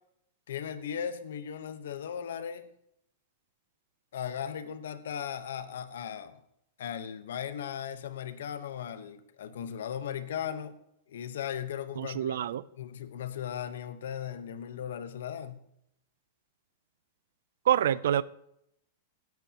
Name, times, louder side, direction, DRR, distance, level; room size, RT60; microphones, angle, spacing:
voice 1, 0.5-2.7 4.1-6.4 6.8-10.8 11.1-15.7, left 8 dB, 80° left, 1.0 m, -37 dB
voice 2, 12.0-12.6 17.7-18.2, right 10 dB, 80° right, 0.4 m, -26 dB
16.0 x 10.5 x 2.9 m
supercardioid pair, 160°, 0 cm